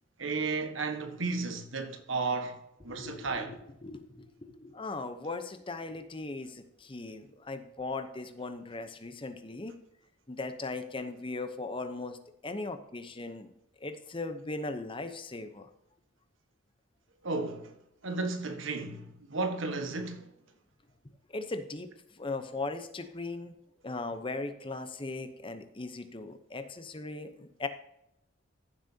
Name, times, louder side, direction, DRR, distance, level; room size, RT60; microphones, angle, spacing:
voice 1, 0.2-2.6 2.8-3.5 17.2-17.7 18.0-20.3, right 3 dB, 85° right, 1.4 m, -33 dB
voice 2, 2.9-9.7 10.3-12.2 12.4-13.5 13.8-15.7 21.3-21.9 22.2-23.5 23.8-27.7, left 3 dB, 25° left, 0.8 m, -38 dB
15.0 x 7.6 x 2.8 m
head